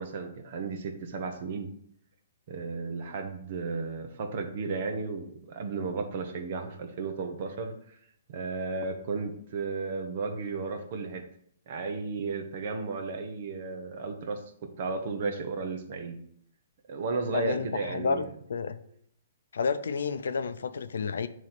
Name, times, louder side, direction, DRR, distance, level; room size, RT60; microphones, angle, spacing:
voice 1, 0.0-1.7 2.5-7.7 8.3-11.2 11.7-14.4 14.8-16.2 16.9-18.2, right 4 dB, 40° right, 5 dB, 0.8 m, -34 dB
voice 2, 17.3-18.8 19.5-21.3, left 5 dB, 90° left, 11 dB, 0.4 m, -30 dB
8.9 x 3.1 x 4.1 m, 0.66 s
hypercardioid pair, 175°, 0 cm